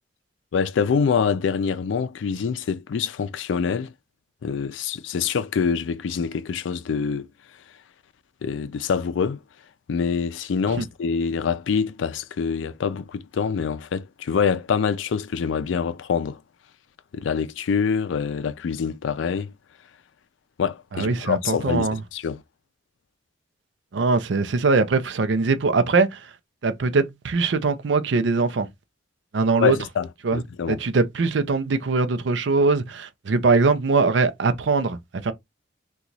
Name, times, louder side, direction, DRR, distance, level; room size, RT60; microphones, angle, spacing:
voice 1, 0.5-3.9 4.4-7.3 8.4-9.4 9.9-16.4 17.1-19.5 20.6-22.4 29.6-30.8, left 6 dB, 85° left, 0.4 m, -25 dB
voice 2, 20.9-22.0 23.9-26.3 26.6-28.7 29.3-29.8 30.2-30.4 30.7-35.3, right 4 dB, 70° right, 0.5 m, -22 dB
2.9 x 2.3 x 3.9 m
head